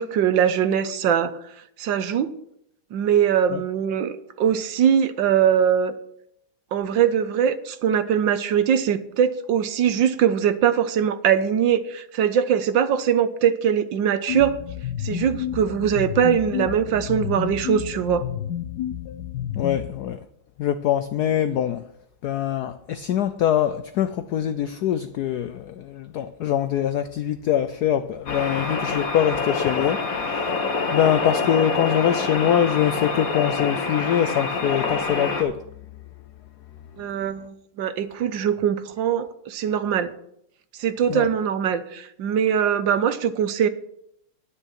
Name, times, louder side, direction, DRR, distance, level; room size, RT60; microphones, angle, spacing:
voice 1, 0.0-1.3 1.8-2.3 2.9-5.9 6.7-14.6 15.0-18.2 37.0-40.1 40.8-43.7, right 8 dB, 70° right, 1.4 m, -22 dB
sound 1, 14.3-19.9, left 10 dB, 65° left, 1.1 m, -30 dB
voice 2, 19.5-20.3 20.6-21.9 22.2-30.6 30.9-35.7 37.2-37.3 41.1-41.3, left 10 dB, 85° left, 0.8 m, -24 dB
sound 2, 28.3-35.4, left 4 dB, 45° left, 1.7 m, -26 dB
9.9 x 9.8 x 5.9 m
omnidirectional pair, 2.3 m